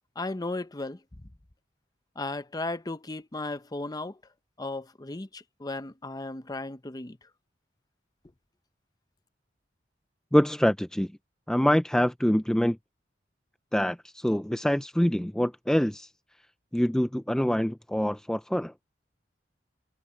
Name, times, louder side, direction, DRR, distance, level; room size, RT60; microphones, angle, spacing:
voice 1, 0.2-1.0 2.2-4.2 4.6-7.2, left 2 dB, 20° left, 0.8 m, -35 dB
voice 2, 10.3-11.1 11.5-12.8 13.7-16.1 16.7-18.7, equal, 5° left, 0.4 m, -25 dB
head